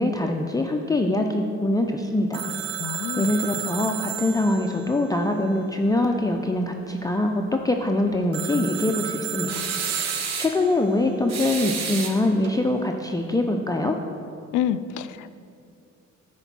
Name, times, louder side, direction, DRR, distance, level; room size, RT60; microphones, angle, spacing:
voice 1, 0.0-2.5 3.2-9.7 10.4-14.0, left 1 dB, 10° left, 2 dB, 0.5 m, -23 dB
Telephone, 2.3-6.0 8.3-10.9, right 9 dB, 40° right, 0.5 m, -33 dB
voice 2, 2.8-3.3 14.5-15.3, left 10 dB, 80° left, 13 dB, 0.5 m, -27 dB
sound 1, 9.5-10.6 11.3-12.6, right 5 dB, 60° right, 1.0 m, -30 dB
9.8 x 4.5 x 5.9 m, 2.5 s
cardioid pair, 90°, 30 cm